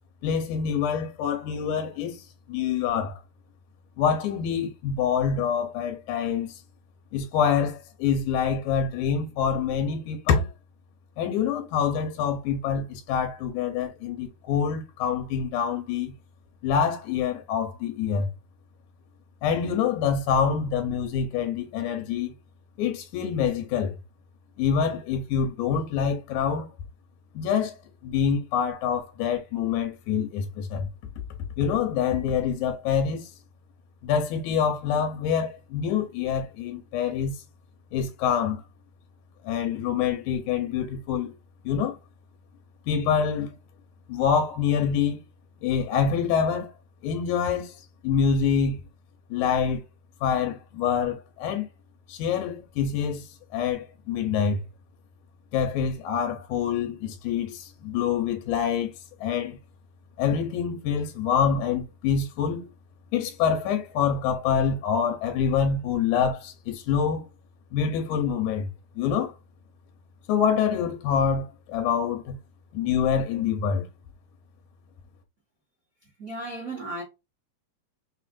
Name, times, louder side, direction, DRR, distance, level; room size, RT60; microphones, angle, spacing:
voice 1, 0.2-3.2 4.0-6.6 7.1-10.5 11.2-16.1 16.6-18.3 19.4-22.3 22.8-23.9 24.6-26.7 27.3-27.7 28.0-30.9 31.6-33.3 34.0-37.4 37.9-38.6 39.4-41.3 41.6-42.0 42.9-43.6 44.1-45.2 45.6-46.7 47.0-48.8 49.3-49.8 50.2-51.7 52.1-54.6 55.5-58.9 59.2-59.6 60.2-62.7 63.1-67.3 67.7-68.7 69.0-69.3 70.3-72.4 72.7-73.8, left 7 dB, 75° left, 2.1 m, -26 dB
voice 2, 76.2-77.0, right 2 dB, 50° right, 1.0 m, -34 dB
5.7 x 2.4 x 2.4 m
omnidirectional pair, 3.7 m